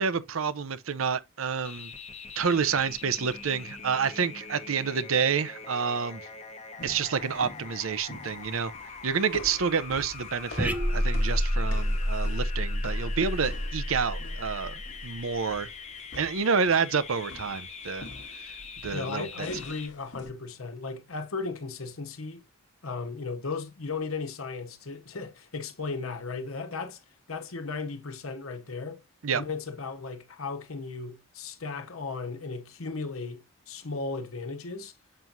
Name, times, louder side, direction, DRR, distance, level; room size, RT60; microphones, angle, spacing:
voice 1, 0.0-1.9 2.4-6.2 6.8-8.7 9.0-15.7 16.2-18.1 18.4-18.5 18.8-19.5 29.2-29.4, right 6 dB, 75° right, 0.7 m, -28 dB
sound 1, 1.6-19.9, left 5 dB, 30° left, 0.9 m, -43 dB
sound 2, 6.8-20.3, left 1 dB, 55° left, 1.1 m, -47 dB
sound 3, 10.6-15.2, equal, 5° right, 0.6 m, -28 dB
voice 2, 18.9-22.4 22.8-27.0 27.3-29.0 29.3-34.9, left 4 dB, 80° left, 1.1 m, -36 dB
7.6 x 6.0 x 2.6 m
head